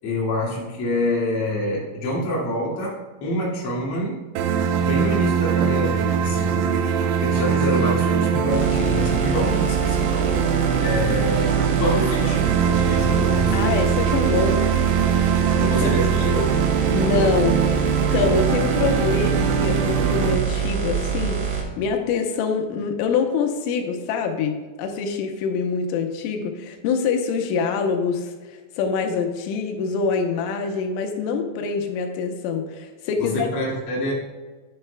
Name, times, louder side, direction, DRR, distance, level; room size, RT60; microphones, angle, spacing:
voice 1, 0.0-4.3 4.7-6.7 7.2-13.8 15.7-16.7 33.2-34.1, left 1 dB, 40° left, -5 dB, 2.0 m, -26 dB
sound 1, 4.4-20.4, right 7 dB, 85° right, 3.3 m, -22 dB
sound 2, 8.5-21.6, right 7 dB, 65° right, 3.3 m, -25 dB
voice 2, 13.5-14.6 15.5-15.9 16.9-21.4 21.8-24.5 24.8-33.5, left 5 dB, 90° left, 4 dB, 3.4 m, -25 dB
10.5 x 8.9 x 2.2 m, 1.3 s
omnidirectional pair, 5.7 m